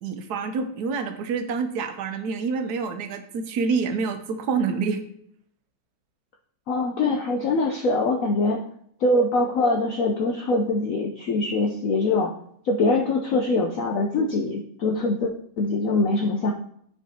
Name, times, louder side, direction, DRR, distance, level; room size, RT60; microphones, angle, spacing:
voice 1, 0.0-5.0, right 5 dB, 65° right, 8 dB, 1.2 m, -27 dB
voice 2, 6.7-8.6 9.0-12.3 12.6-16.5, left 2 dB, 70° left, 2 dB, 0.8 m, -23 dB
13.0 x 4.7 x 2.7 m, 0.68 s
omnidirectional pair, 2.0 m